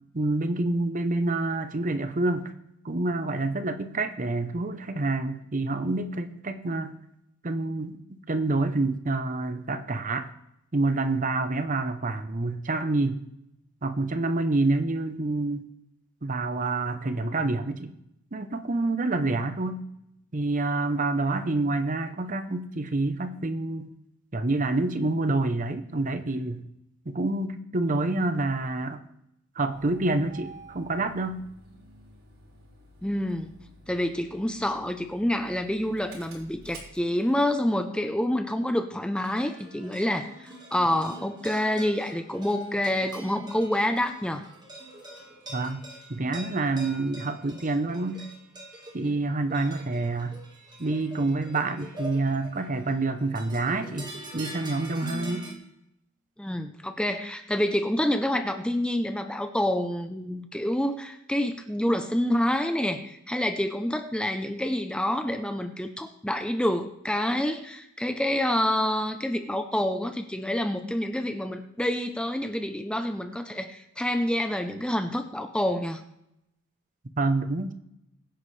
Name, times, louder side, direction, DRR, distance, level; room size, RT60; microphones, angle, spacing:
voice 1, 0.1-2.5 2.8-7.0 7.4-10.3 10.7-13.2 13.8-15.6 16.2-17.9 18.3-19.8 20.3-23.9 24.3-26.6 27.1-29.0 29.6-31.5 45.5-45.8 46.1-48.3 48.9-50.4 50.8-55.5 77.2-77.7, right 2 dB, 35° right, 9 dB, 0.7 m, -27 dB
Engine starting, 29.7-37.6, right 2 dB, 80° right, 4.1 m, -51 dB
voice 2, 33.0-33.5 33.9-44.5 56.4-76.0, left 1 dB, 5° left, 7 dB, 0.6 m, -27 dB
sound 1, 39.2-55.5, right 1 dB, 20° right, 1.7 m, -44 dB
21.5 x 9.8 x 3.3 m, 0.83 s
head